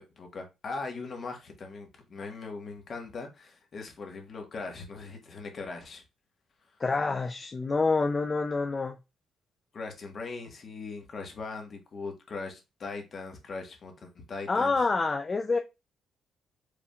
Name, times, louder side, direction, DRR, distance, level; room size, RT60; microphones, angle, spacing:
voice 1, 0.0-6.0 9.7-14.8, left 4 dB, 45° left, 1.3 m, -40 dB
voice 2, 6.8-9.0 14.5-15.6, left 3 dB, 30° left, 0.4 m, -27 dB
4.8 x 3.4 x 2.3 m
cardioid pair, 90°, 0 cm